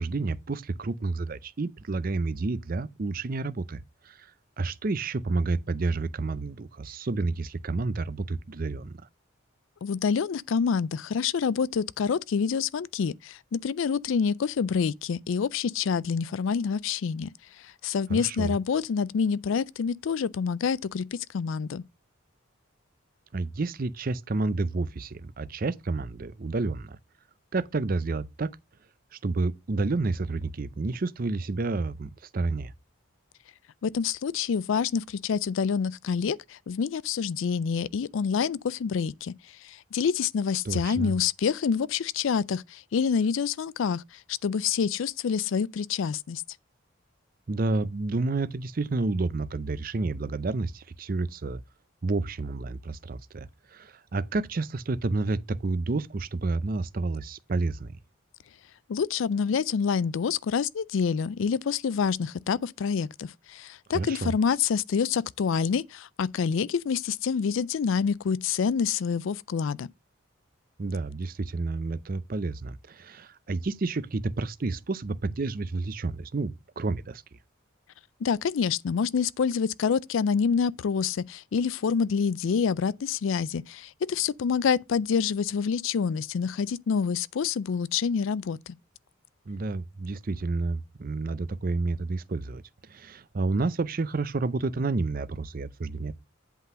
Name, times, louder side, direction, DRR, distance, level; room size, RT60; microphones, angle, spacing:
voice 1, 0.0-4.3 4.6-9.1 18.1-18.5 23.3-27.0 27.5-28.5 29.1-32.7 40.6-41.2 47.5-51.6 52.0-58.0 63.9-64.3 70.8-77.2 89.5-96.1, right 3 dB, 45° right, 0.5 m, -30 dB
voice 2, 9.8-17.3 17.6-21.8 33.8-39.3 39.6-46.4 58.9-69.9 78.2-88.8, left 6 dB, 70° left, 0.4 m, -27 dB
8.2 x 3.8 x 6.2 m
head